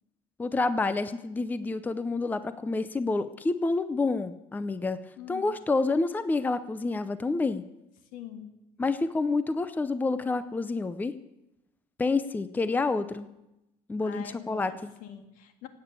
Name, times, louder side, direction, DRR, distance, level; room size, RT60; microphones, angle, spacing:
voice 1, 0.4-5.0 5.3-7.6 8.8-11.1 12.0-13.3 13.9-14.9, left 3 dB, 10° left, 13 dB, 0.6 m, -28 dB
voice 2, 5.2-5.5 8.1-8.5 14.0-15.7, left 9 dB, 75° left, 8 dB, 2.1 m, -43 dB
17.0 x 8.9 x 8.3 m, 0.92 s
cardioid pair, 135°, 14 cm